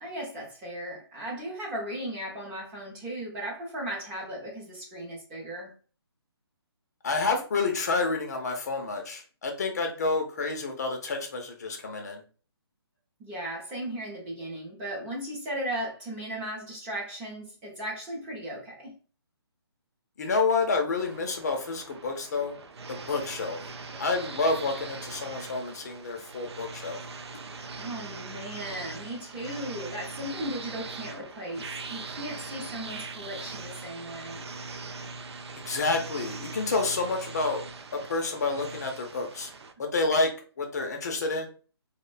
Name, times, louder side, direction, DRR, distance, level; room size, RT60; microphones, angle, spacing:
voice 1, 0.0-5.7 11.9-12.0 13.2-18.9 23.9-24.0 27.8-34.4, right 1 dB, 10° right, 0.5 m, -36 dB
voice 2, 7.0-12.2 20.2-22.6 22.9-23.6 24.0-27.0 35.6-37.6 37.9-39.5 39.8-41.5, left 3 dB, 40° left, 0.5 m, -29 dB
sound 1, 21.0-39.7, right 4 dB, 80° right, 0.4 m, -41 dB
2.5 x 2.1 x 2.4 m
hypercardioid pair, 160°, 14 cm